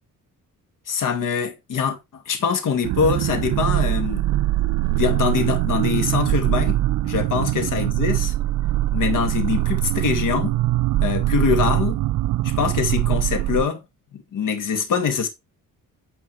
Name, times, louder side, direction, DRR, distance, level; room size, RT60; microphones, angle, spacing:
voice 1, 0.9-4.2 4.9-6.8 7.0-8.3 8.9-10.5 11.0-12.0 12.4-13.8 14.1-15.3, left 6 dB, 70° left, 2.2 m, -24 dB
sound 1, 2.8-13.6, right 15 dB, 75° right, 0.5 m, -22 dB
9.6 x 4.5 x 4.6 m
cardioid pair, 110°, 33 cm